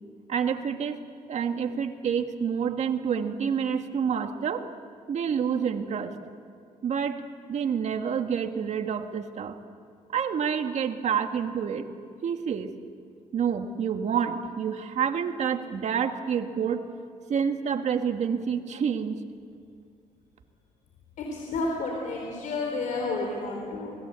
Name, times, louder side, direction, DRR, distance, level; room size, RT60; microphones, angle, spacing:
voice 1, 0.3-1.0 1.3-4.7 5.1-6.2 6.8-7.2 7.5-9.6 10.1-11.9 12.2-12.7 13.3-16.9 17.3-19.2, right 7 dB, 55° right, 6 dB, 1.8 m, -28 dB
voice 2, 21.2-23.9, left 3 dB, 70° left, 1 dB, 4.2 m, -31 dB
27.5 x 20.5 x 8.3 m, 2.3 s
cardioid pair, 90°, 14 cm